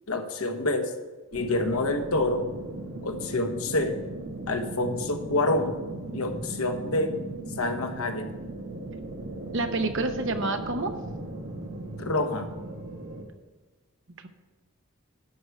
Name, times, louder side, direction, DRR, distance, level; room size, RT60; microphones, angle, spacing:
voice 1, 0.1-0.9 1.3-2.5 3.0-4.0 4.5-5.8 6.1-7.2 7.5-8.3 12.0-12.5, left 2 dB, 80° left, 5 dB, 1.2 m, -27 dB
sound 1, 1.3-13.2, right 2 dB, 80° right, 1.8 m, -38 dB
voice 2, 9.5-10.9 14.2-14.3, right 2 dB, 60° right, 7 dB, 0.9 m, -28 dB
11.5 x 4.7 x 7.7 m, 1.3 s
head